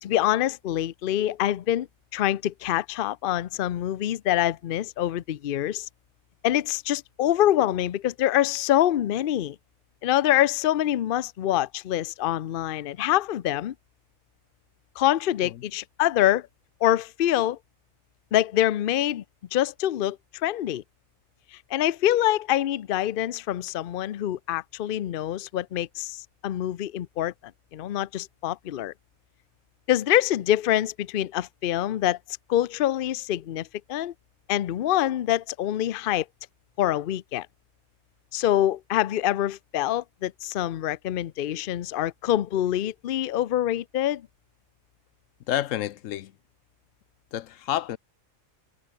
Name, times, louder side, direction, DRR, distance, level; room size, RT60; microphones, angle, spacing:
voice 1, 0.0-1.9 2.1-5.9 6.4-9.6 10.0-13.7 15.0-16.5 16.8-17.6 18.3-19.2 19.5-20.8 21.5-27.3 27.7-28.9 29.9-32.2 32.5-34.1 34.5-36.3 36.8-37.5 38.3-44.3, left 12 dB, 55° left, 0.7 m, -25 dB
voice 2, 45.5-46.3 47.3-48.0, left 12 dB, 80° left, 1.0 m, -29 dB
omnidirectional pair, 1.3 m